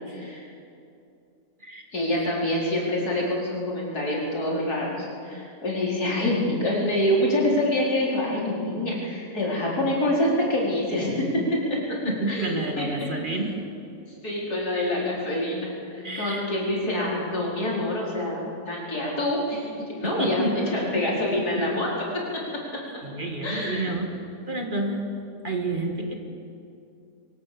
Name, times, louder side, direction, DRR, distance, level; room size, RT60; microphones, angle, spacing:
voice 1, 0.1-0.4 1.9-12.0 12.3-13.5 14.2-22.1 22.3-22.4 23.4-23.9, left 1 dB, 90° left, -4 dB, 5.1 m, -26 dB
voice 2, 12.1-13.5 16.0-16.5 20.0-21.6 23.0-24.1 24.5-25.0 25.4-26.1, right 2 dB, 35° right, 3 dB, 2.1 m, -30 dB
22.5 x 18.0 x 7.0 m, 2.6 s
omnidirectional pair, 1.6 m